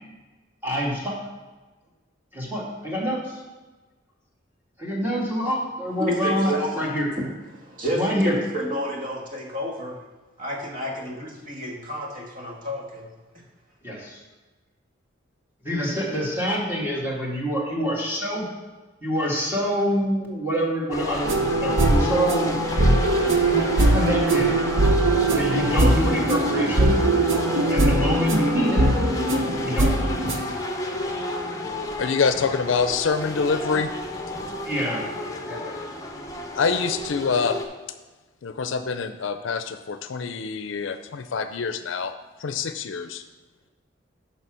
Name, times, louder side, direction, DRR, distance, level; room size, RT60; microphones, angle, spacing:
voice 1, 0.6-1.1 2.3-3.4 4.8-7.1 7.9-8.4 13.8-14.2 15.6-18.4 19.0-22.6 23.8-24.5 25.3-27.0 27.7-28.8 29.6-30.1 34.6-35.1 35.5-35.7, equal, 10° right, -4 dB, 2.0 m, -26 dB
voice 2, 6.0-6.9 7.5-10.0 10.4-13.1, equal, 45° right, -1 dB, 1.6 m, -30 dB
sound 1, 20.9-37.7, left 1 dB, 15° left, 0.9 m, -31 dB
sound 2, 21.2-30.6, right 2 dB, 80° right, 0.8 m, -21 dB
voice 3, 32.0-33.9 36.5-37.6 38.4-42.1 42.4-43.2, left 5 dB, 75° left, 9 dB, 0.5 m, -25 dB
7.0 x 5.6 x 6.1 m, 1.2 s
head